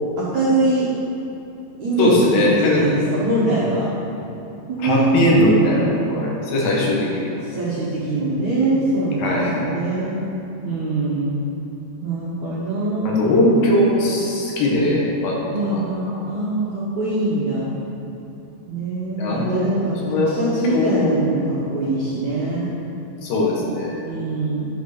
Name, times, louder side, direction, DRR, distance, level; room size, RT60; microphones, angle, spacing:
voice 1, 0.2-0.9 1.8-3.9 4.7-5.1 6.8-6.9 7.4-10.2 10.6-11.3 12.0-13.2 15.5-17.7 18.7-22.7 24.0-24.6, right 2 dB, 75° right, -9 dB, 1.7 m, -23 dB
voice 2, 2.0-2.8 4.8-7.2 9.2-9.5 13.0-15.8 16.1-16.2 19.2-19.7 20.0-21.2 23.2-24.0, left 1 dB, 60° left, -3 dB, 2.7 m, -19 dB
11.5 x 4.8 x 6.7 m, 2.9 s
omnidirectional pair, 5.4 m